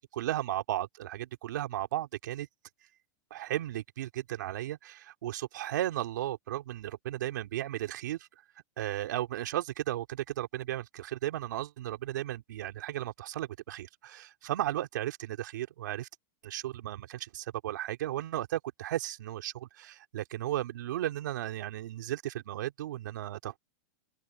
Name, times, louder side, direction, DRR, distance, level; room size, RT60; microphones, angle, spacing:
voice 1, 0.0-2.5 3.3-8.3 8.8-16.1 16.4-23.5, right 13 dB, 75° right, 3.6 m, -35 dB
open air
supercardioid pair, 145°, 10 cm